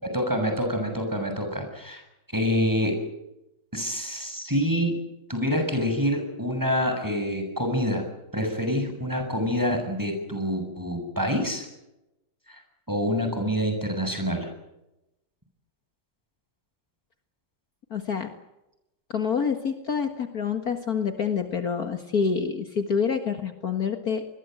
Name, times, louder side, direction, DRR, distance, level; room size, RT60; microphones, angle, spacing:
voice 1, 0.0-2.0 2.3-3.0 3.7-5.0 5.3-8.0 8.3-11.7 12.5-12.6 12.9-14.5, equal, 10° right, 5 dB, 7.2 m, -26 dB
voice 2, 17.9-18.3 19.1-24.2, left 6 dB, 50° left, 6 dB, 2.2 m, -27 dB
27.0 x 21.5 x 7.9 m, 0.92 s
omnidirectional pair, 2.1 m